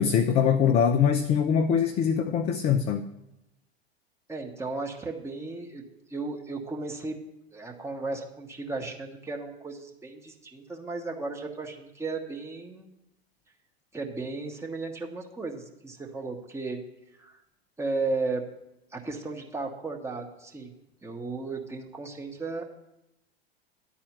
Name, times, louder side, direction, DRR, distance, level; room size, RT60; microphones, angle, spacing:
voice 1, 0.0-3.1, left 7 dB, 20° left, 7 dB, 0.3 m, -23 dB
voice 2, 4.3-5.8 6.1-7.2 7.5-12.9 13.9-16.8 17.2-17.4 17.8-18.5 18.9-20.7 21.0-22.6, right 3 dB, 10° right, 2 dB, 1.0 m, -35 dB
11.0 x 4.3 x 7.9 m, 0.89 s
figure-of-eight pair, 90°, 31 cm